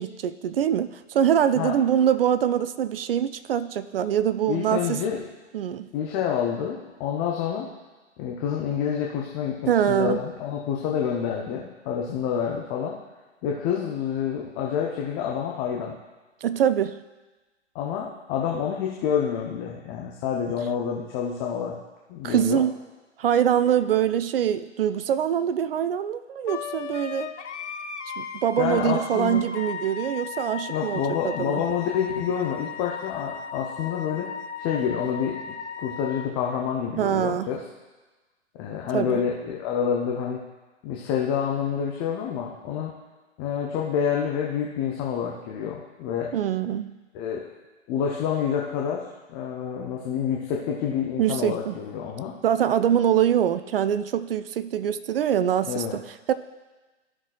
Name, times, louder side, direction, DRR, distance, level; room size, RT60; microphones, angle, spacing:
voice 1, 0.0-5.0 5.5-5.9 9.7-10.2 16.4-17.0 22.2-22.8 23.2-27.3 28.2-31.6 37.0-37.5 38.9-39.2 46.3-46.9 51.2-51.8 52.4-56.3, right 9 dB, 50° right, 13 dB, 0.5 m, -24 dB
voice 2, 4.5-5.2 5.9-7.7 8.2-13.0 13.4-15.9 17.7-21.8 22.1-22.6 28.6-29.4 30.7-34.3 34.6-35.4 35.8-37.6 38.6-40.4 40.8-42.9 43.4-46.3 47.1-47.4 47.9-52.3 55.7-56.0, left 8 dB, 15° left, -1 dB, 0.4 m, -28 dB
Wind instrument woodwind instrument, 26.5-36.3, left 6 dB, 70° left, 0.9 m, -36 dB
14.5 x 5.9 x 2.3 m, 1.2 s
figure-of-eight pair, 120°, 36 cm